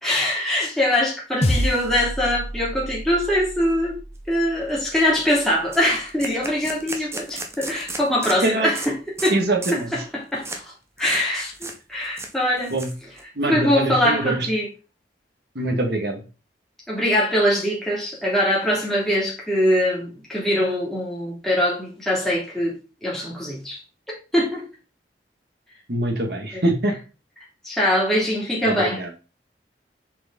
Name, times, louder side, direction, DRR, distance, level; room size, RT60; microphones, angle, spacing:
voice 1, 0.0-4.0 4.3-8.9 9.2-9.3 9.9-10.7 11.0-12.7 13.5-14.7 16.9-22.7 23.0-23.8 24.3-24.6 26.5-26.6 27.6-29.0, left 1 dB, ahead, 3.2 m, -22 dB
sound 1, 1.4-6.0, equal, 40° left, 1.1 m, -29 dB
sound 2, 4.3-4.4 4.8-4.9 5.2-5.3 5.7-8.4 8.7-8.9 9.2-9.3 9.6-9.9 10.4-10.6 11.0-11.2 11.5-11.8 12.0-13.2, right 2 dB, 15° right, 1.0 m, -34 dB
voice 2, 8.4-8.7 9.3-9.9 12.7-12.9 13.4-14.5 15.6-16.2 25.9-26.9 28.6-29.1, right 2 dB, 65° right, 2.0 m, -24 dB
6.7 x 5.2 x 4.0 m
head